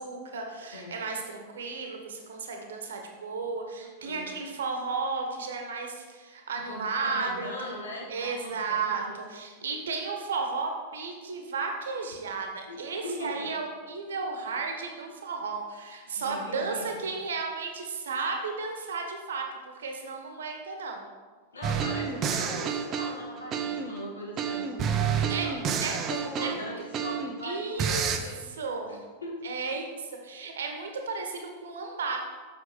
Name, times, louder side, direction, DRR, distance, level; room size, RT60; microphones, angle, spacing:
voice 1, 0.0-7.7 8.1-21.0 25.3-26.0 26.4-26.7 27.4-28.1 28.6-29.0 29.4-32.2, right 4 dB, 65° right, 3 dB, 1.2 m, -34 dB
voice 2, 3.8-4.3 6.7-9.2 9.6-9.8 12.7-13.5 16.0-17.0 21.5-25.6 26.1-28.4 28.9-29.4, left 1 dB, 75° left, -2 dB, 1.9 m, -40 dB
sound 1, 21.6-24.0 24.4-27.4 27.8-28.2, right 7 dB, 30° right, 0.7 m, -29 dB
7.8 x 6.3 x 4.7 m, 1.4 s
figure-of-eight pair, 90°, 0 cm